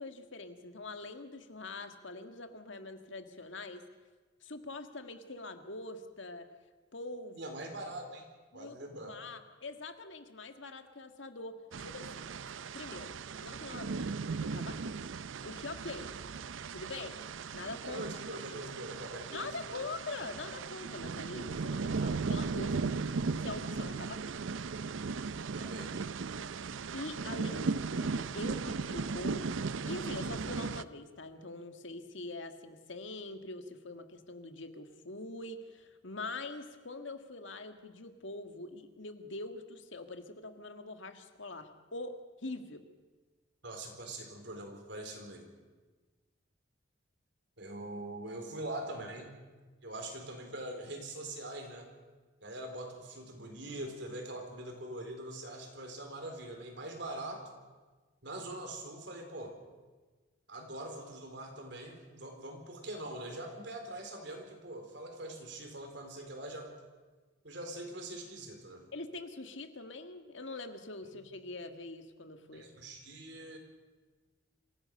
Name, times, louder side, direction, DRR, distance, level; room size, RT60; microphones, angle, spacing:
voice 1, 0.0-3.8 4.4-6.5 6.9-7.5 8.5-12.3 12.7-15.1 15.4-16.1 16.7-17.2 17.5-18.1 18.5-18.6 19.3-22.9 23.4-24.4 26.9-42.8 68.9-72.7, left 2 dB, 70° left, 7 dB, 1.8 m, -44 dB
voice 2, 7.3-8.3 8.5-9.2 17.8-19.8 25.5-26.0 43.6-45.5 47.6-49.4 49.8-51.9 52.4-57.4 58.2-59.5 60.5-66.7 67.4-68.8 71.0-71.2 72.5-73.6, right 1 dB, 60° right, 3 dB, 4.2 m, -43 dB
sound 1, 11.7-30.8, right 4 dB, 80° right, 0.6 m, -37 dB
26.5 x 16.0 x 6.7 m, 1.3 s
head